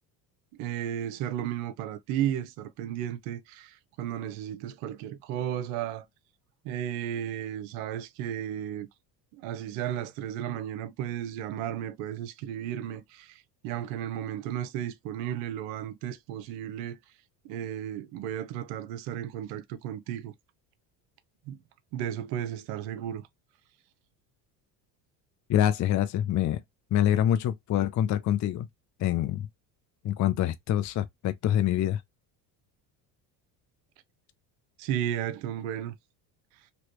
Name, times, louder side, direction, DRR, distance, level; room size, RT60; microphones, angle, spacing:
voice 1, 0.5-6.1 6.6-8.9 9.3-17.0 17.4-20.3 21.5-21.6 21.9-23.2 34.8-35.9, right 11 dB, 80° right, 0.8 m, -34 dB
voice 2, 25.5-26.6 26.9-28.7 29.0-29.5 30.0-32.0, left 11 dB, 40° left, 0.5 m, -25 dB
3.0 x 2.9 x 3.0 m
supercardioid pair, 80°, 49 cm